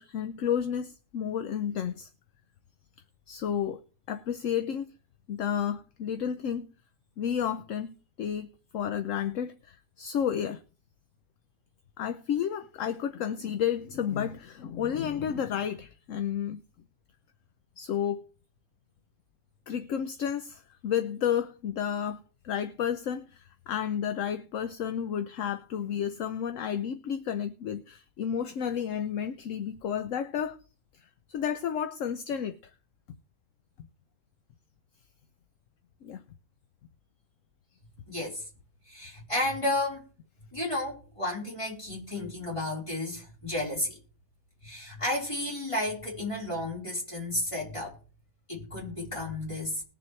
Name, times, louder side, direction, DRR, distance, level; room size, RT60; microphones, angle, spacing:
voice 1, 0.0-2.1 3.3-3.8 4.1-4.9 5.3-6.7 7.2-8.5 8.7-10.6 12.0-16.6 17.8-18.2 19.7-30.6 31.3-32.7 36.0-36.2, left 8 dB, 65° left, 1.0 m, -31 dB
voice 2, 38.1-38.4 38.9-40.0 40.5-44.0 44.6-48.0 48.5-49.8, left 1 dB, 20° left, 4.2 m, -32 dB
20.5 x 7.0 x 3.2 m
omnidirectional pair, 1.5 m